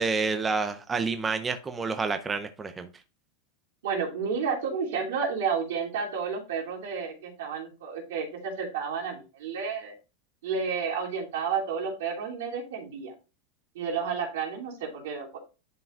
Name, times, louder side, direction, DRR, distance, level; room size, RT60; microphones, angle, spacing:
voice 1, 0.0-2.9, right 4 dB, 15° right, 8 dB, 0.5 m, -29 dB
voice 2, 3.8-9.9 10.4-13.1 13.7-15.4, right 6 dB, 80° right, -1 dB, 2.9 m, -31 dB
11.0 x 4.8 x 2.4 m, 0.31 s
supercardioid pair, 140°, 0 cm